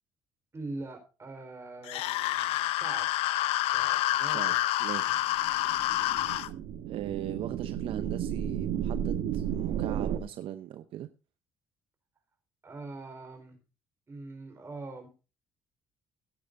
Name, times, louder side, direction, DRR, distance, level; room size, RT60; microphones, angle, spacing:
voice 1, 0.5-3.1 3.7-4.7 5.0-5.2 12.6-13.6 14.1-15.1, right 3 dB, 25° right, 4 dB, 4.1 m, -43 dB
sound 1, 1.9-6.5, left 15 dB, 90° left, 0.6 m, -28 dB
voice 2, 4.8-5.2 6.9-11.1, right 11 dB, 70° right, 10 dB, 0.7 m, -39 dB
sound 2, 5.3-10.2, right 9 dB, 85° right, 1.1 m, -33 dB
17.0 x 9.0 x 2.6 m, 0.31 s
cardioid pair, 105°, 10 cm